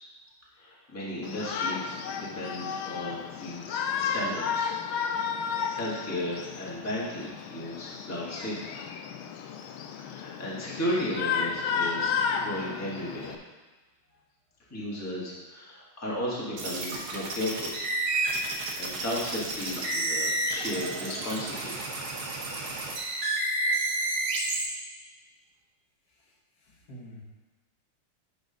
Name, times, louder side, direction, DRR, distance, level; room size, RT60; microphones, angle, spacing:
voice 1, 0.6-4.7 5.7-8.8 10.0-13.4 14.7-17.8 18.7-21.9 24.7-25.1, left 1 dB, 10° left, -6 dB, 1.4 m, -35 dB
Shout, 1.2-13.4, left 6 dB, 75° left, 1.4 m, -33 dB
sound 1, 16.6-24.6, right 2 dB, 70° right, 2.0 m, -30 dB
voice 2, 26.1-27.2, equal, 50° left, -2 dB, 1.8 m, -50 dB
10.0 x 4.1 x 5.2 m, 1.3 s
omnidirectional pair, 2.4 m